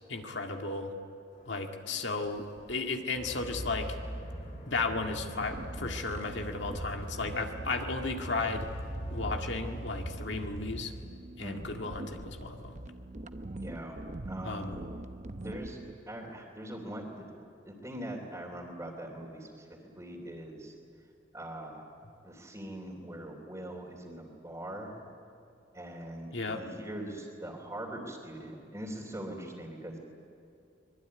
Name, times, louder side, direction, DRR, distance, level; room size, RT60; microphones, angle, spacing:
voice 1, 0.1-0.9 1.5-4.0 4.7-8.7 9.1-10.9 11.4-12.8 14.4-14.8 26.3-26.6, left 3 dB, 65° left, 3 dB, 2.0 m, -34 dB
sound 1, 1.3-10.7, right 1 dB, 40° left, 5.1 m, -41 dB
sound 2, 5.3-15.9, right 1 dB, 40° right, 0.9 m, -44 dB
voice 2, 13.5-14.0 14.3-14.7 15.4-15.8 16.1-17.3 17.6-20.7 21.3-21.8 22.2-24.9 25.7-30.0, right 1 dB, 15° right, -5 dB, 3.2 m, -42 dB
25.0 x 21.5 x 9.6 m, 2.7 s
head